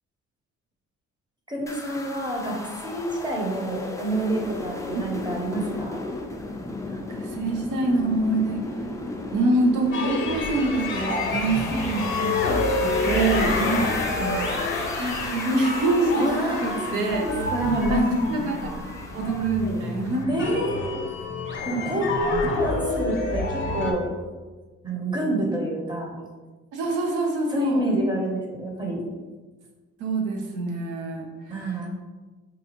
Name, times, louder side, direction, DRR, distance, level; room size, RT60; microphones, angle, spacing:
voice 1, 1.5-2.6 2.8-6.0 13.5-13.9 16.2-18.2 20.3-21.0 21.7-24.1 24.8-26.2 27.5-29.0 31.5-31.9, right 1 dB, 15° right, -1 dB, 0.8 m, -27 dB
sound 1, 1.7-20.2, left 2 dB, 10° left, 0.4 m, -36 dB
voice 2, 7.2-8.6 9.3-12.4 12.8-13.5 14.2-14.4 15.0-16.3 16.6-17.2 17.7-18.0 18.3-18.7 19.1-20.2 26.7-27.8 30.0-31.2, right 2 dB, 80° right, 2 dB, 0.7 m, -25 dB
sound 2, 9.9-23.9, left 3 dB, 40° left, 0.7 m, -28 dB
3.9 x 2.4 x 2.9 m, 1.3 s
cardioid pair, 90°, 30 cm